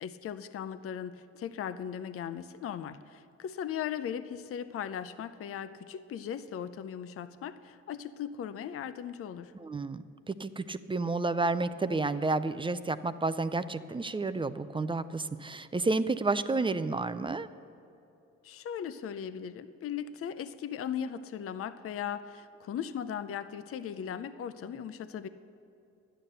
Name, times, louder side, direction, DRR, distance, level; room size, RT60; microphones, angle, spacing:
voice 1, 0.0-9.6 18.4-25.3, left 8 dB, 50° left, 12 dB, 0.6 m, -38 dB
voice 2, 9.6-17.5, right 3 dB, 15° right, 12 dB, 0.4 m, -31 dB
11.5 x 10.0 x 6.7 m, 2.7 s
cardioid pair, 90°, 30 cm